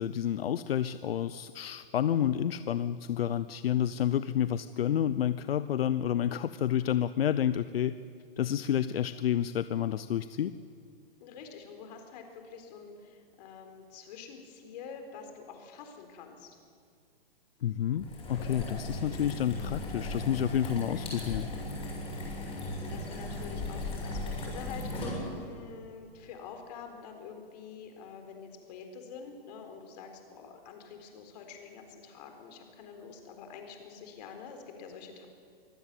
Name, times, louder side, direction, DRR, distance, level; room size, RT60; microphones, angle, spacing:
voice 1, 0.0-8.0 8.4-10.5 17.6-21.5, left 10 dB, 80° left, 13 dB, 0.8 m, -29 dB
voice 2, 11.2-16.6 22.7-35.3, left 6 dB, 45° left, 5 dB, 4.0 m, -47 dB
sound 1, 18.0-25.6, left 2 dB, 20° left, 7.3 m, -37 dB
24.5 x 15.0 x 8.3 m, 2.3 s
hypercardioid pair, 150°, 30 cm